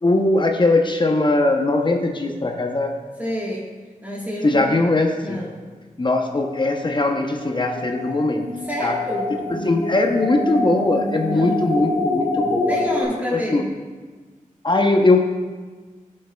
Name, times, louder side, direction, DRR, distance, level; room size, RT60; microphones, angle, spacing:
voice 1, 0.0-2.9 4.4-5.4 6.0-8.5 8.8-9.0 9.5-12.8 13.3-13.6 14.6-15.2, left 2 dB, 35° left, 3 dB, 0.7 m, -20 dB
voice 2, 3.2-3.7 4.0-4.7 5.2-5.6 8.6-9.4 11.3-11.5 12.7-13.7, equal, 10° right, -4 dB, 1.4 m, -29 dB
sound 1, 6.2-13.0, left 2 dB, 55° left, 2.0 m, -26 dB
13.0 x 5.3 x 2.2 m, 1.4 s
cardioid pair, 55°, 14 cm